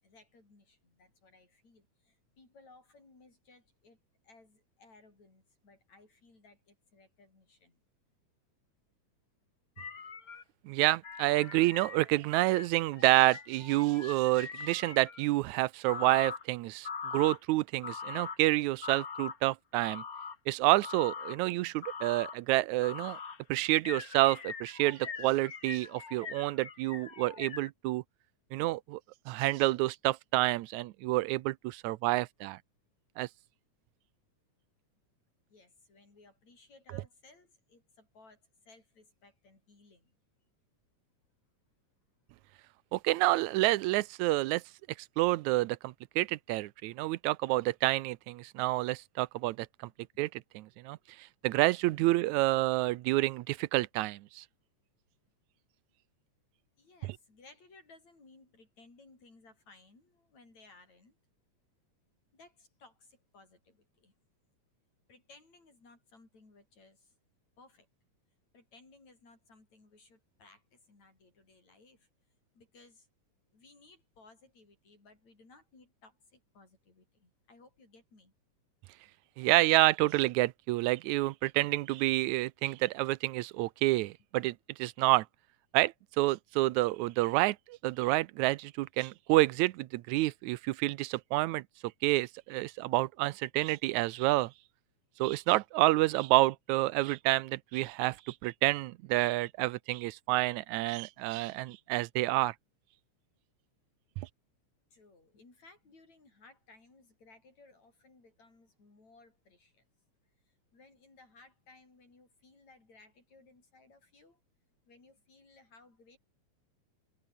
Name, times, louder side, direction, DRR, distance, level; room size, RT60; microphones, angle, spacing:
voice 1, 0.0-4.0 4.2-7.8 35.5-40.2 50.0-50.2 52.0-52.1 52.9-53.0 56.8-61.2 62.3-64.1 65.1-67.1 67.6-67.9 68.5-72.1 72.6-73.1 73.5-78.3 104.9-109.8 110.5-114.4 114.9-116.2, left 3 dB, 70° left, 9.4 m, -60 dB
sound 1, 9.8-10.4 11.0-15.3 15.9-16.4 16.8-17.4 17.8-18.4 18.8-19.4 19.8-20.4 20.8-21.4 21.8-22.4 22.8-23.4 23.8-27.7, left 5 dB, 35° left, 1.9 m, -42 dB
voice 2, 10.7-20.0 20.5-23.2 23.5-28.0 28.5-29.0 29.3-32.6 33.2-33.3 42.9-44.6 45.2-49.7 50.2-50.3 50.5-51.0 51.4-54.4 79.4-85.3 85.7-91.6 92.0-94.5 95.2-102.5 104.2-104.3, right 18 dB, 80° right, 2.0 m, -28 dB
omnidirectional pair, 3.3 m